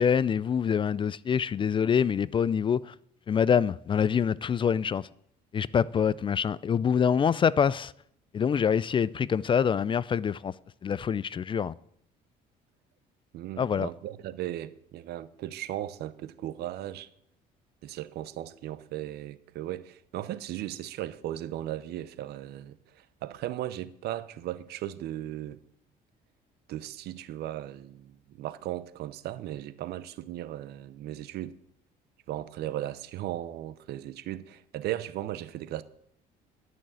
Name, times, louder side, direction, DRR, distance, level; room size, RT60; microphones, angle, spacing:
voice 1, 0.0-2.9 3.3-5.1 5.5-7.9 8.3-10.5 10.8-11.7 13.6-13.9, left 7 dB, 30° left, 0.3 m, -25 dB
voice 2, 13.3-17.1 17.8-25.6 26.7-31.5 32.3-35.8, right 13 dB, 75° right, 0.8 m, -37 dB
11.5 x 6.3 x 9.0 m
cardioid pair, 110°, 17 cm